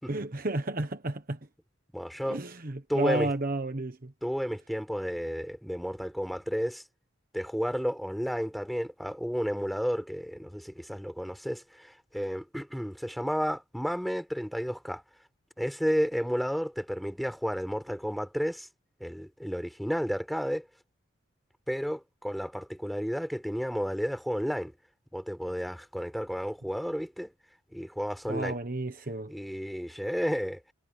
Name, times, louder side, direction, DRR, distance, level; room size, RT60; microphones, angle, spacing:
voice 1, 0.1-1.4 2.2-4.1 28.3-29.3, right 2 dB, 40° right, 1.2 m, -32 dB
voice 2, 1.9-2.4 2.9-3.3 4.2-6.8 7.3-15.0 15.6-18.7 19.0-20.7 21.7-24.7 25.1-27.3 27.7-28.6 29.3-30.6, equal, ahead, 4.3 m, -32 dB
head